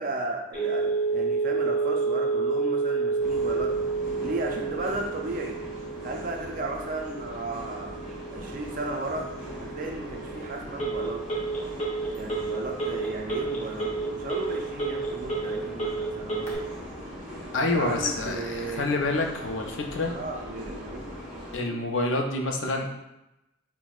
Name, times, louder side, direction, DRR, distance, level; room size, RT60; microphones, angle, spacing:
voice 1, 0.0-3.8 4.2-5.6 6.0-8.0 8.3-9.3 9.6-11.3 12.1-16.6 17.6-18.8 20.1-21.2 21.5-21.8, right 2 dB, 45° right, 2 dB, 0.4 m, -35 dB
Telephone, 0.5-16.5, right 4 dB, 35° left, 0.8 m, -30 dB
sound 1, 3.2-21.6, equal, 5° right, 1.2 m, -41 dB
voice 2, 17.5-20.1 21.5-22.9, left 2 dB, 75° left, 3 dB, 0.5 m, -27 dB
5.8 x 2.1 x 2.3 m, 0.92 s
head